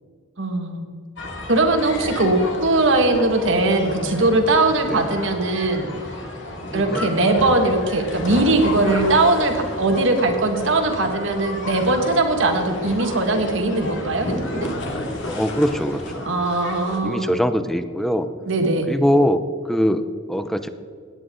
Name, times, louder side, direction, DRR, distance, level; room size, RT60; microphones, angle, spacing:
voice 1, 0.4-0.9 1.5-5.9 6.7-14.7 16.3-17.4 18.5-18.9, right 2 dB, 65° right, 5 dB, 1.7 m, -20 dB
sound 1, 1.2-17.0, left 1 dB, 60° left, 2.3 m, -32 dB
voice 2, 6.7-7.1 15.2-16.2 17.0-18.3 18.9-19.4 19.7-20.7, equal, ahead, 10 dB, 0.5 m, -22 dB
17.0 x 10.5 x 3.8 m, 2.2 s
head